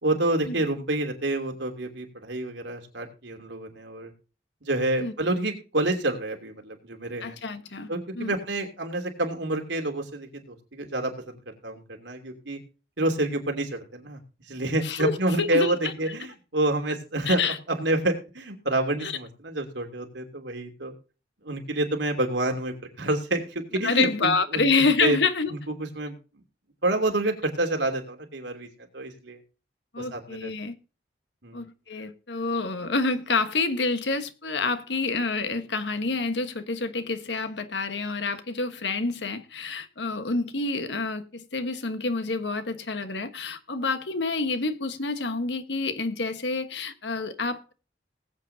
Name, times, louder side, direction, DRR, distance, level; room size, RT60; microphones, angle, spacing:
voice 1, 0.0-4.1 4.6-7.4 7.9-12.6 13.0-14.2 14.5-17.4 17.7-20.9 21.4-25.2 25.5-26.1 26.8-28.7 28.9-29.4 30.0-30.5 31.4-31.6, right 2 dB, 85° right, 2.9 m, -28 dB
voice 2, 7.2-7.9 8.1-8.3 14.8-15.9 17.3-17.6 19.0-19.1 23.8-25.5 29.9-30.7 31.5-47.7, left 3 dB, 75° left, 1.3 m, -28 dB
20.0 x 8.3 x 2.8 m
head